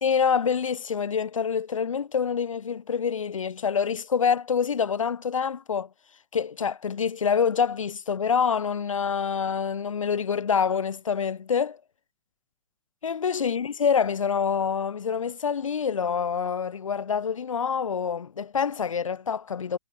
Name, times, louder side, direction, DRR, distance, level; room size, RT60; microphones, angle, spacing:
voice 1, 0.0-5.9 6.3-11.8 13.0-19.8, left 6 dB, 90° left, 1.3 m, -26 dB
hypercardioid pair, 125°, 16 cm